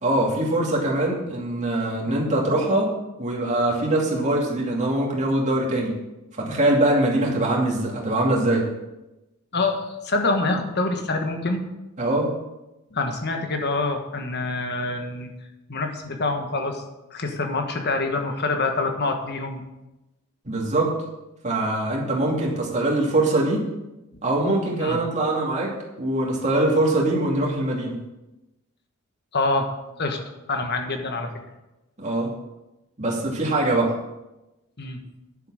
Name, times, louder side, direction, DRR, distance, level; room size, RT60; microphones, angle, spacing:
voice 1, 0.0-2.9 3.2-6.0 6.3-8.7 12.0-12.3 20.4-21.0 21.4-23.6 24.2-28.0 32.0-32.3 33.0-33.9, right 1 dB, 35° right, -3 dB, 2.7 m, -23 dB
voice 2, 9.5-11.6 12.9-15.3 15.7-16.8 17.1-19.6 24.8-25.0 29.3-29.7 30.0-30.2 30.5-31.3 34.8-35.0, left 3 dB, 50° left, 5 dB, 1.4 m, -26 dB
10.0 x 7.8 x 6.4 m, 1.0 s
head